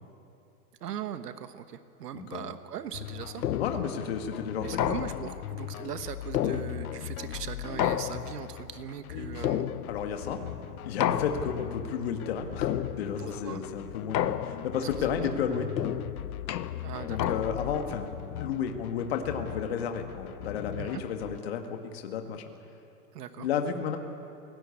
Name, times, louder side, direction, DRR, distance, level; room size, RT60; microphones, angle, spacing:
voice 1, 0.8-3.5 4.6-9.7 13.2-13.6 14.8-15.3 16.8-17.3 20.8-21.0 23.1-23.5, right 9 dB, 70° right, 10 dB, 1.3 m, -40 dB
voice 2, 2.1-2.5 3.6-4.7 9.1-9.5 9.9-10.4 10.8-15.7 17.0-22.4 23.4-24.0, left 7 dB, 35° left, 5 dB, 1.8 m, -32 dB
sound 1, 2.9-21.4, left 13 dB, 65° left, 0.5 m, -40 dB
sound 2, 3.4-4.0 4.8-5.5 6.3-7.1 7.8-8.6 9.4-10.2 11.0-11.7 12.6-13.3 14.1-14.9 15.8-17.8, left 10 dB, 80° left, 1.2 m, -31 dB
28.5 x 17.5 x 8.4 m, 2.7 s
supercardioid pair, 180°, 50 cm